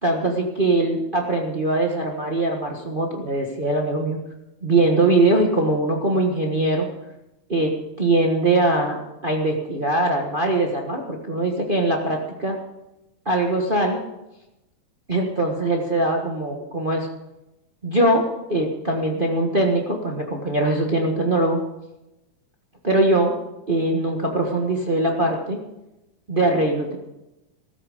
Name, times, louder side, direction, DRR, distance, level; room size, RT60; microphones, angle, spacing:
voice 1, 0.0-4.2 4.6-6.9 7.5-7.7 8.0-12.6 13.3-14.0 15.1-17.1 17.8-21.6 22.8-23.3 23.7-25.6 26.3-27.0, right 2 dB, 60° right, 1 dB, 0.5 m, -21 dB
14.5 x 13.5 x 5.1 m, 0.93 s
omnidirectional pair, 3.6 m